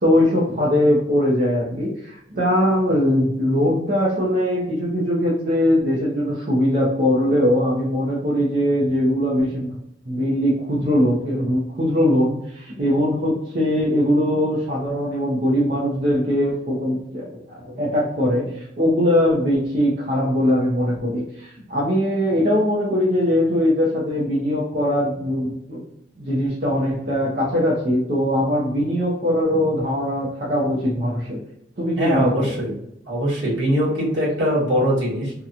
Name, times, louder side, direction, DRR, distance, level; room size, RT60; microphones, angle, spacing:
voice 1, 0.0-9.8 10.0-25.8 26.2-31.4 31.8-32.5, equal, 45° right, -5 dB, 0.6 m, -21 dB
voice 2, 32.0-35.3, equal, 75° right, -7 dB, 1.2 m, -22 dB
2.8 x 2.2 x 2.4 m, 0.80 s
head